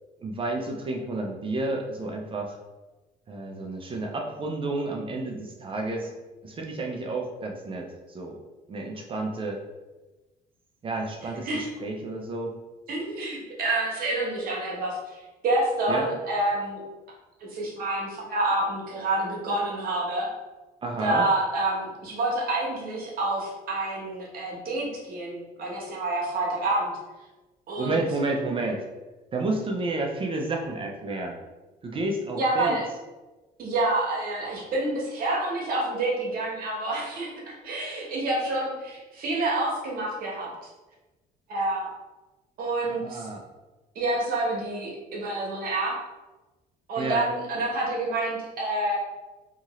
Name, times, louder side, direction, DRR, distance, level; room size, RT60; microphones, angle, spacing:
voice 1, 0.2-2.6 3.3-6.1 6.4-8.4 8.7-9.6 10.8-12.5 15.9-16.1 20.8-21.3 27.8-28.9 29.3-31.4 31.8-32.8 42.8-43.4 47.0-47.2, right 2 dB, 30° right, 2 dB, 0.5 m, -30 dB
voice 2, 12.9-16.8 17.4-20.3 21.0-26.9 27.7-28.0 32.4-32.8 33.6-40.5 41.5-41.9 42.6-43.3 43.9-45.9 46.9-49.0, right 2 dB, 60° right, -3 dB, 1.0 m, -28 dB
2.8 x 2.5 x 3.0 m, 1.1 s
cardioid pair, 110°, 17 cm